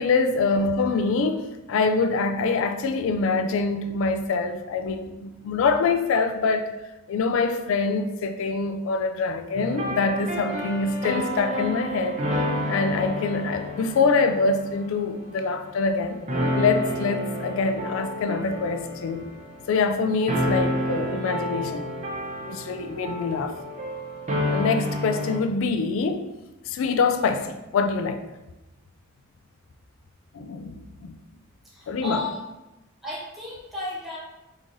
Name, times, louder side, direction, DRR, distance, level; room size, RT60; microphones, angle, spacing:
voice 1, 0.0-6.7 7.1-12.2 12.7-16.2 16.5-19.2 19.7-21.9 22.4-23.5 24.5-26.3 26.7-28.2 30.3-31.2 31.9-32.2, left 4 dB, 65° left, 0.3 m, -25 dB
sound 1, 9.5-16.0 16.3-25.4, equal, 35° right, 0.6 m, -30 dB
voice 2, 31.6-32.4 33.0-34.2, left 2 dB, ahead, 1.0 m, -33 dB
3.7 x 3.1 x 2.6 m
head